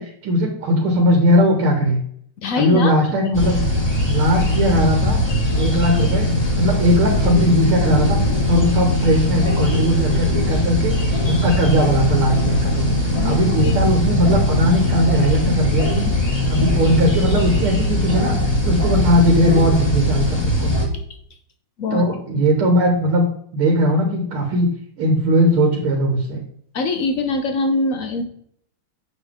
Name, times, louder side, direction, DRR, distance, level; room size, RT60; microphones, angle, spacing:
voice 1, 0.0-2.0 2.5-3.6 4.1-5.2 5.6-6.3 6.6-12.9 13.2-16.1 16.5-20.7 21.9-23.3 23.5-24.7 25.0-26.4, equal, 75° right, 1 dB, 2.3 m, -19 dB
voice 2, 2.4-2.9 13.1-13.9 21.8-22.0 22.3-22.4 26.7-28.2, left 3 dB, 75° left, 6 dB, 0.7 m, -23 dB
sound 1, 3.3-20.9, left 1 dB, 15° left, 1.3 m, -20 dB
7.9 x 5.4 x 3.5 m, 0.65 s
omnidirectional pair, 2.4 m